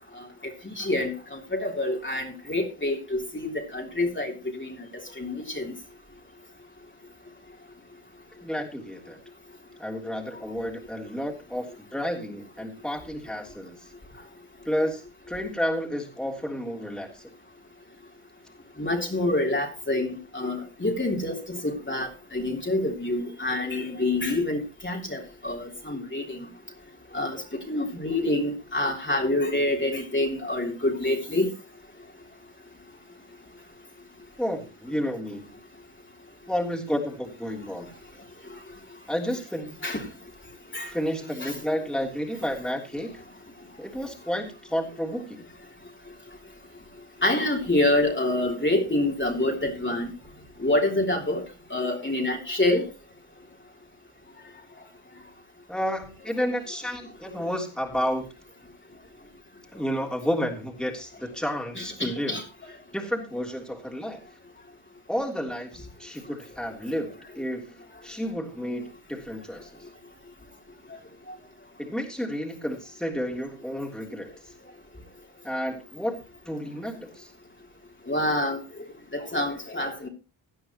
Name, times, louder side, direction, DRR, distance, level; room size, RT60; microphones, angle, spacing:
voice 1, 0.4-5.7 18.8-26.4 27.1-27.4 27.7-31.5 39.8-40.0 40.7-40.9 41.4-41.5 47.2-50.1 50.6-51.4 51.7-52.8 61.7-62.4 78.1-78.6 79.1-80.1, left 1 dB, 25° left, 0 dB, 3.2 m, -27 dB
voice 2, 8.4-9.2 9.8-11.7 11.9-13.8 14.6-17.3 34.4-35.5 36.5-37.9 39.1-39.8 40.8-43.2 43.8-45.4 55.7-58.3 59.7-62.4 62.9-64.2 65.1-67.6 68.0-69.7 71.8-74.3 75.4-77.3, equal, ahead, 0 dB, 3.3 m, -31 dB
17.5 x 11.0 x 3.0 m, 0.30 s
cardioid pair, 75°, 49 cm